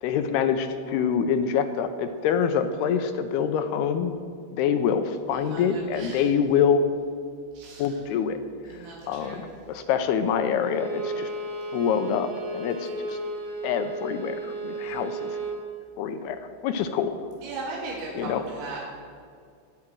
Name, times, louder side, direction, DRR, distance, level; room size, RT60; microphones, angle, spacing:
voice 1, 0.0-4.1 4.6-6.8 7.8-8.4 9.1-11.3 11.7-13.2 13.6-15.4 16.0-16.4 16.6-17.1 18.1-18.4, left 7 dB, 80° left, 8 dB, 2.5 m, -25 dB
voice 2, 5.5-6.3 7.5-8.0 8.7-9.4 17.4-18.8, right 3 dB, 85° right, -4 dB, 4.3 m, -37 dB
Bowed string instrument, 10.6-15.6, right 2 dB, 65° right, 2.3 m, -34 dB
22.0 x 8.7 x 4.6 m, 2.2 s
omnidirectional pair, 5.1 m